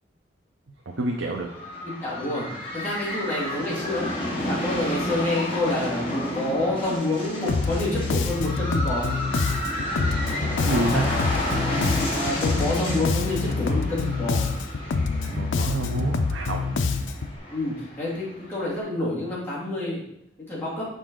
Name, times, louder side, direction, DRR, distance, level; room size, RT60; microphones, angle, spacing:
voice 1, 0.9-1.5 10.6-11.1 15.3-16.7, right 2 dB, 75° right, 1 dB, 0.7 m, -27 dB
sound 1, 1.1-18.8, left 1 dB, 30° left, 2.1 m, -31 dB
voice 2, 1.8-2.5 2.7-4.1 4.4-9.2 12.1-14.5 17.5-20.0 20.5-20.9, left 1 dB, 10° left, -8 dB, 2.5 m, -28 dB
Bass guitar, 7.5-17.4, left 4 dB, 80° left, 0.5 m, -26 dB
6.6 x 5.1 x 3.8 m, 0.75 s
head